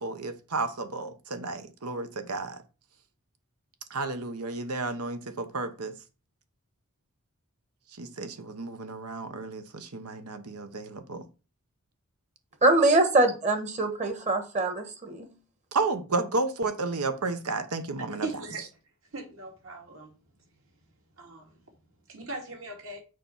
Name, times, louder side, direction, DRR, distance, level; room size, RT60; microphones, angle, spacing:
voice 1, 0.0-2.6 3.9-6.0 8.0-11.2 15.7-18.3, right 3 dB, 90° right, 1.1 m, -32 dB
voice 2, 12.6-15.3, right 2 dB, 30° right, 1.2 m, -23 dB
voice 3, 18.2-18.7 19.1-20.1 21.2-21.5 22.1-23.0, right 2 dB, 65° right, 2.5 m, -38 dB
6.7 x 4.6 x 5.5 m
head